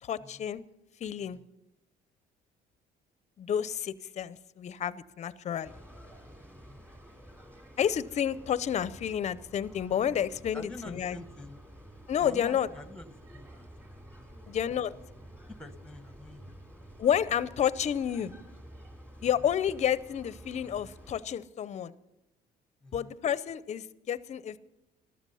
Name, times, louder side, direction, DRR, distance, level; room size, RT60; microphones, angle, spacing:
voice 1, 0.0-0.6 1.0-1.4 3.4-5.7 7.8-11.2 12.1-12.7 14.5-14.9 17.0-18.3 19.2-21.9 22.9-24.6, left 9 dB, 40° left, 17 dB, 0.6 m, -30 dB
voice 2, 1.2-1.5 6.5-6.8 10.5-11.6 12.2-14.6 15.6-16.6 19.4-19.5 22.8-23.1, left 2 dB, 5° left, 11 dB, 1.2 m, -48 dB
sound 1, 5.6-21.2, equal, 10° right, 3.1 m, -51 dB
14.5 x 12.5 x 5.6 m, 0.95 s
cardioid pair, 110°, 17 cm